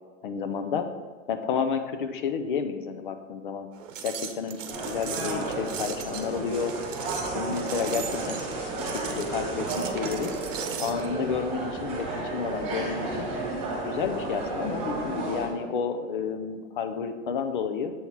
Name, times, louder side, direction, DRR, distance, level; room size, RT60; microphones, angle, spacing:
voice 1, 0.2-0.9 1.3-3.7 4.0-6.8 7.3-10.3 10.8-13.3 13.9-17.9, left 6 dB, 40° left, 8 dB, 0.5 m, -31 dB
sound 1, 3.8-11.1, right 8 dB, 70° right, 0.9 m, -38 dB
sound 2, 4.7-15.5, right 2 dB, 15° right, 1.6 m, -32 dB
7.2 x 4.2 x 4.6 m, 1.5 s
supercardioid pair, 170°, 39 cm